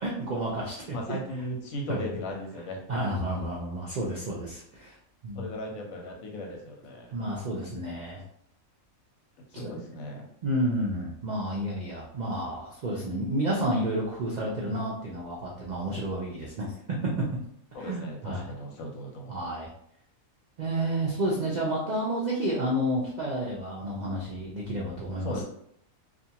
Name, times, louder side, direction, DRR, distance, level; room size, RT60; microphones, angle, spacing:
voice 1, 0.0-1.2 1.9-2.1 2.9-4.9 5.2-5.5 7.1-8.2 9.5-9.7 10.4-16.7 17.8-18.5 19.3-19.7 20.6-25.4, right 1 dB, 90° right, -4 dB, 0.4 m, -30 dB
voice 2, 0.9-2.8 5.3-7.1 9.6-10.3 16.3-16.4 17.7-19.4 25.2-25.4, left 1 dB, 85° left, 1 dB, 1.1 m, -37 dB
2.5 x 2.4 x 2.8 m, 0.71 s
omnidirectional pair, 1.4 m